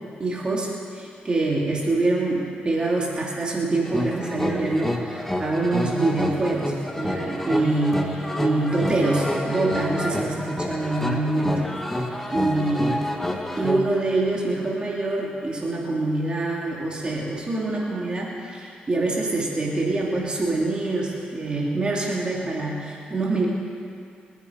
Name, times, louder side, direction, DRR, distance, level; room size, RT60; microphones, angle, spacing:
voice 1, 0.2-11.6 12.3-13.0 13.6-23.5, right 2 dB, 30° right, -3 dB, 2.7 m, -25 dB
sound 1, 3.8-13.8, left 1 dB, 10° left, 1.5 m, -28 dB
27.0 x 9.4 x 5.0 m, 2.4 s
cardioid pair, 100°, 3 cm